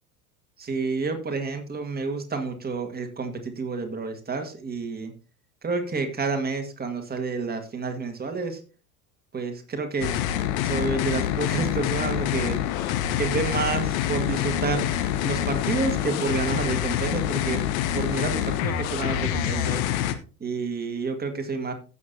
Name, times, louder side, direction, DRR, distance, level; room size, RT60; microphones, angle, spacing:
voice 1, 0.6-5.1 5.6-8.6 9.3-10.1 10.6-12.6 13.2-14.9 15.2-17.6 17.9-19.8 20.4-21.7, right 4 dB, 20° right, 5 dB, 1.9 m, -29 dB
sound 1, 10.0-20.2, left 10 dB, 55° left, 1.1 m, -26 dB
15.5 x 7.1 x 2.8 m, 0.35 s
figure-of-eight pair, 75°, 48 cm